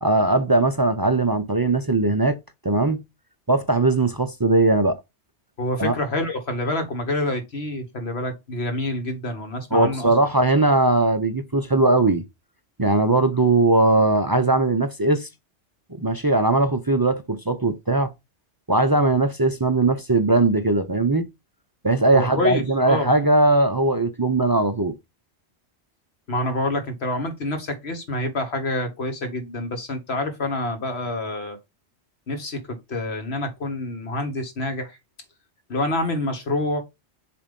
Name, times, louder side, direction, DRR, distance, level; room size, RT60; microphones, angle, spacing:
voice 1, 0.0-2.4 2.6-3.0 3.5-5.0 5.8-5.9 9.7-12.2 12.8-15.3 16.0-18.1 18.7-21.3 21.8-24.9, right 2 dB, 35° right, 0.4 m, -19 dB
voice 2, 5.6-10.1 22.1-23.1 26.3-31.6 32.3-35.0 35.7-36.8, left 2 dB, 65° left, 1.6 m, -27 dB
7.2 x 2.5 x 5.2 m
omnidirectional pair, 1.2 m